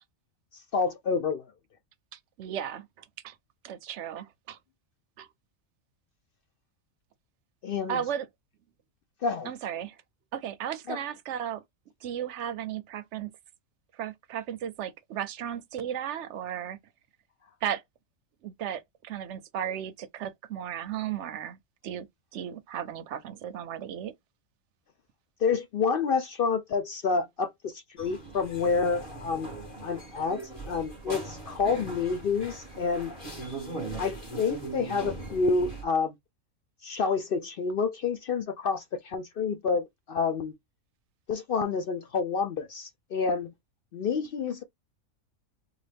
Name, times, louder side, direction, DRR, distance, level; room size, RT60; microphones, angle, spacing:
voice 1, 0.7-1.4 7.6-8.0 9.2-9.5 10.9-11.0 25.4-29.5 29.8-33.1 34.0-36.1 36.8-40.5 41.3-43.5 43.9-44.6, left 5 dB, 65° left, 0.5 m, -28 dB
voice 2, 2.1-3.4 3.6-4.6 5.2-5.3 7.9-8.3 9.4-10.0 10.3-11.6 12.0-13.3 13.9-16.8 17.6-17.8 18.4-21.6 21.8-22.1 22.3-24.1, right 9 dB, 65° right, 0.8 m, -35 dB
sound 1, 28.0-35.8, right 2 dB, 40° left, 2.1 m, -40 dB
4.0 x 2.4 x 3.3 m
omnidirectional pair, 1.4 m